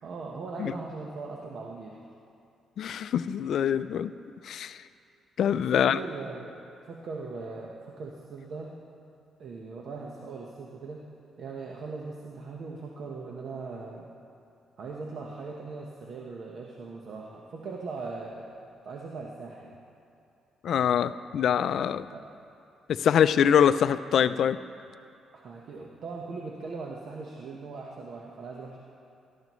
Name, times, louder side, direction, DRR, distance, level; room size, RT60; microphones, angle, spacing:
voice 1, 0.0-2.0 5.6-6.6 6.9-8.7 9.4-11.0 11.4-14.1 14.8-18.5 18.8-19.8 22.1-22.3 25.3-28.8, right 4 dB, 65° right, -1 dB, 1.1 m, -39 dB
voice 2, 2.8-4.1 4.4-4.8 5.4-6.0 20.6-22.1 22.9-24.6, left 8 dB, 65° left, 13 dB, 0.4 m, -24 dB
17.5 x 13.0 x 3.1 m, 2.5 s
cardioid pair, 90°, 0 cm